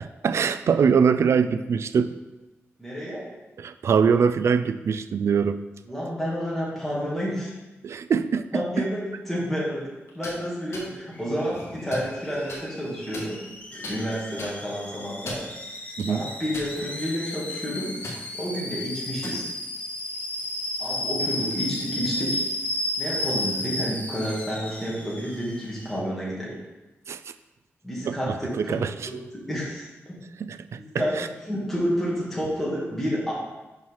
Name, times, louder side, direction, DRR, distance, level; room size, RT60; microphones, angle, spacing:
voice 1, 0.2-2.2 3.6-5.6 7.8-8.6 16.0-16.3 27.1-27.2 28.0-29.1 30.4-31.3, right 6 dB, 65° right, 11 dB, 0.3 m, -23 dB
voice 2, 2.8-3.2 5.9-7.5 8.5-9.9 10.1-13.4 13.7-15.4 16.1-17.9 18.3-19.5 20.8-22.4 23.0-26.6 27.8-28.7 29.0-29.2 29.5-29.9 30.8-31.1 31.5-33.3, equal, 5° left, -7 dB, 2.4 m, -30 dB
sound 1, 10.1-10.4 10.7-10.9 11.5-12.1 12.5-12.6 13.1-13.6 13.8-14.0 14.4-14.5 15.1-15.5 16.0-16.1 16.5-17.1 17.4-17.6 18.0-18.2 19.0-19.4, left 1 dB, 65° left, 1.6 m, -37 dB
Alarm / Boiling, 11.1-26.0, left 1 dB, 25° left, 1.0 m, -33 dB
5.6 x 4.7 x 5.6 m, 1.1 s
cardioid pair, 90°, 5 cm